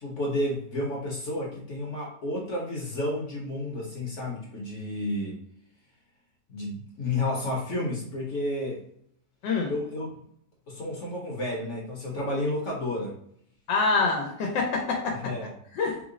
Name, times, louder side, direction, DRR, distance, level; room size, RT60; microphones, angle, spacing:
voice 1, 0.0-5.4 6.5-8.8 9.7-10.1 10.7-13.2 15.2-15.5, left 1 dB, 55° left, -3 dB, 1.0 m, -31 dB
voice 2, 13.7-15.2 15.7-16.0, left 4 dB, 85° left, 0 dB, 1.4 m, -25 dB
3.6 x 2.0 x 3.7 m, 0.68 s
omnidirectional pair, 1.9 m